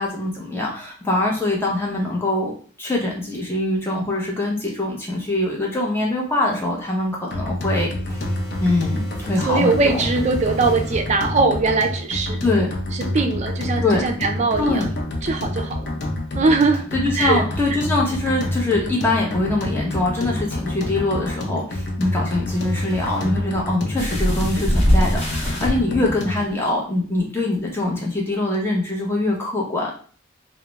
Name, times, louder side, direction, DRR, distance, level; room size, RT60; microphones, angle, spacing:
voice 1, 0.0-7.9 8.6-9.0 9.3-10.0 12.4-12.7 13.8-14.0 14.6-14.9 16.9-29.9, left 2 dB, 10° left, -2 dB, 0.6 m, -23 dB
sound 1, 7.3-26.5, left 1 dB, 55° left, 0.5 m, -28 dB
sound 2, 8.1-11.2 22.5-23.2, right 2 dB, 15° right, 0.9 m, -36 dB
voice 2, 9.5-12.4 13.1-14.9 15.2-15.9 16.3-16.8 17.1-17.4, right 3 dB, 35° right, 4 dB, 0.3 m, -21 dB
sound 3, 24.0-25.7 26.7-26.8 27.2-27.3, equal, 35° left, 1.0 m, -21 dB
2.3 x 2.0 x 3.0 m, 0.43 s
head